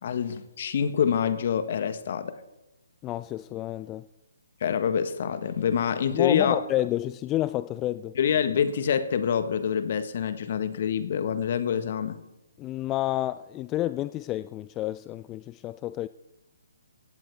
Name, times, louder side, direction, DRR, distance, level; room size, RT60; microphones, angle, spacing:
voice 1, 0.0-2.4 4.6-6.6 8.1-12.2, left 8 dB, 50° left, 1.5 m, -26 dB
voice 2, 3.0-4.0 6.1-8.1 12.6-16.1, left 14 dB, 20° left, 0.4 m, -30 dB
17.0 x 16.0 x 3.6 m
figure-of-eight pair, 135°, 0 cm